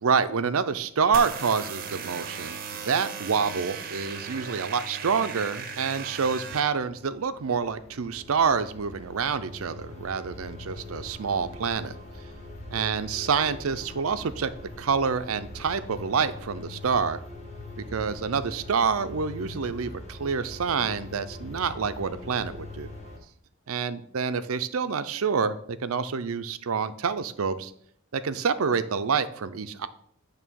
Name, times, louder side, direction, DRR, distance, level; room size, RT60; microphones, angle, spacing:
voice 1, 0.0-11.9 12.7-14.5 14.8-17.2 17.9-22.9 23.7-27.7 28.1-29.9, right 6 dB, 90° right, 13 dB, 0.6 m, -27 dB
sound 1, 1.1-6.6, right 6 dB, 45° right, 0.7 m, -37 dB
sound 2, 6.9-23.2, left 2 dB, 35° left, 1.6 m, -42 dB
9.0 x 3.3 x 6.2 m, 0.66 s
head